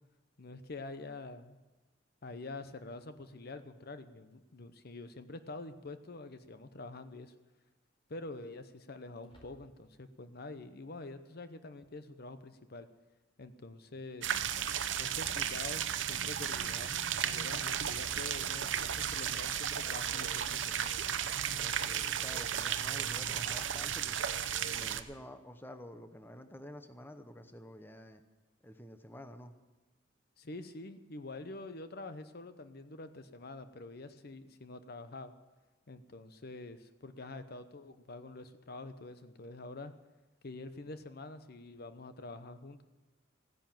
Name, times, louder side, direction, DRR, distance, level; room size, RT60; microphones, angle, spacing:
voice 1, 0.4-1.6 2.2-7.3 8.1-12.9 13.4-14.4 15.0-21.0 30.4-35.3 35.9-39.9 40.4-42.8, left 2 dB, 55° left, 10 dB, 0.8 m, -46 dB
sound 1, 9.2-10.1, equal, 30° left, 4.3 m, -63 dB
sound 2, 14.2-25.0, right 9 dB, 75° right, 0.8 m, -34 dB
voice 2, 21.5-24.3 24.7-28.2 28.6-29.5, equal, 10° left, 8 dB, 0.9 m, -49 dB
15.5 x 10.5 x 7.4 m, 1.1 s
head